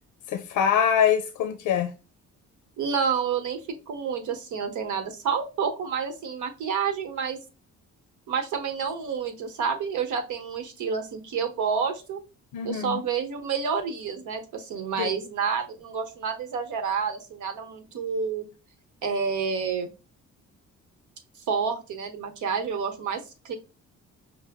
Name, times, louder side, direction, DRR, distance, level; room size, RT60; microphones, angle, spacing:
voice 1, 0.3-1.9 12.5-13.0 15.0-15.1, left 8 dB, 85° left, 0.6 m, -24 dB
voice 2, 2.8-3.6 3.9-7.4 8.3-12.2 12.6-18.5 19.0-19.9 21.5-23.6, right 6 dB, 75° right, 1.1 m, -29 dB
5.5 x 2.1 x 3.5 m
cardioid pair, 90°, 30 cm